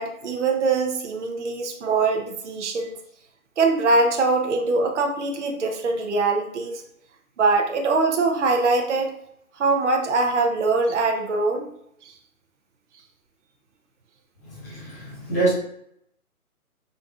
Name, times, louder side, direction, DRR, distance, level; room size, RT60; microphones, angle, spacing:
voice 1, 0.0-2.9 3.6-6.8 7.4-9.1 9.6-11.7 12.0-12.1, right 3 dB, 50° right, 3 dB, 0.7 m, -22 dB
voice 2, 14.6-15.5, right 2 dB, 10° left, -9 dB, 0.9 m, -25 dB
5.1 x 2.6 x 2.3 m, 0.73 s
hypercardioid pair, 165°, 44 cm